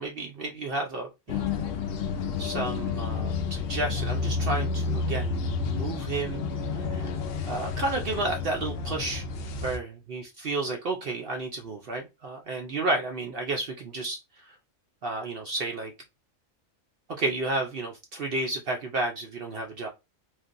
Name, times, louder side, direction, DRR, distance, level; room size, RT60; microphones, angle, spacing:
voice 1, 0.0-1.5 2.4-6.4 6.7-7.1 7.5-9.2 9.6-14.5 15.0-15.9 17.1-19.9, right 2 dB, 60° right, 0.6 m, -32 dB
sound 1, 1.3-9.8, left 5 dB, 65° left, 0.6 m, -30 dB
3.2 x 2.4 x 2.5 m
omnidirectional pair, 1.4 m